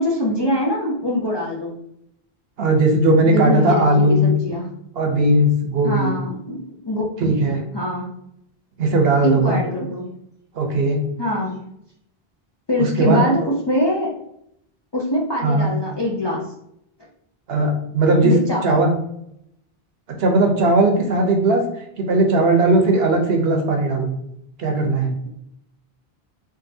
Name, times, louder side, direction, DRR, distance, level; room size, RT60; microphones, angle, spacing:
voice 1, 0.0-1.7 3.3-4.7 5.8-8.1 9.2-10.1 11.2-11.5 12.7-14.1 14.9-16.4 18.2-18.8, left 1 dB, 35° left, -4 dB, 0.4 m, -23 dB
voice 2, 2.6-4.3 5.0-6.1 7.2-7.6 8.8-9.6 10.5-11.0 12.8-13.2 15.4-15.7 17.5-18.3 18.6-18.9 20.2-21.6 22.0-24.1 24.6-25.1, right 2 dB, 75° right, 3 dB, 0.9 m, -17 dB
3.7 x 2.5 x 2.6 m, 0.76 s
omnidirectional pair, 1.0 m